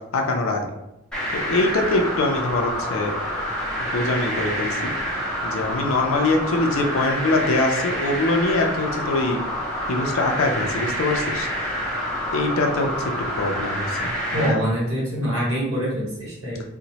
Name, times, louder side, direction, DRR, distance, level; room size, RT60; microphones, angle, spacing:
voice 1, 0.1-0.7 1.3-3.1 3.8-4.9 5.4-9.4 9.9-11.5 12.3-12.9 13.4-14.7, left 2 dB, 70° left, 3 dB, 0.4 m, -23 dB
sound 1, 1.1-14.5, equal, 5° left, 0.5 m, -27 dB
voice 2, 14.3-16.6, equal, 70° right, -6 dB, 1.2 m, -25 dB
2.8 x 2.1 x 2.8 m, 0.91 s
head